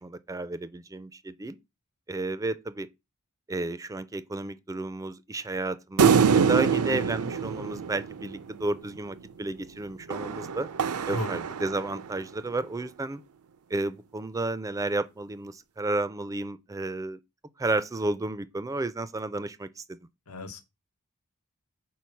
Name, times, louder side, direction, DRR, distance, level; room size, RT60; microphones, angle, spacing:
voice 1, 0.0-1.6 2.1-2.9 3.5-10.7 11.1-13.2 13.7-17.2 17.6-20.0, right 2 dB, 15° right, 0.4 m, -32 dB
sound 1, 6.0-8.7 10.1-12.2, right 6 dB, 80° right, 0.5 m, -25 dB
voice 2, 11.1-11.4 20.3-20.6, equal, 85° left, 1.2 m, -34 dB
4.6 x 4.5 x 5.6 m
head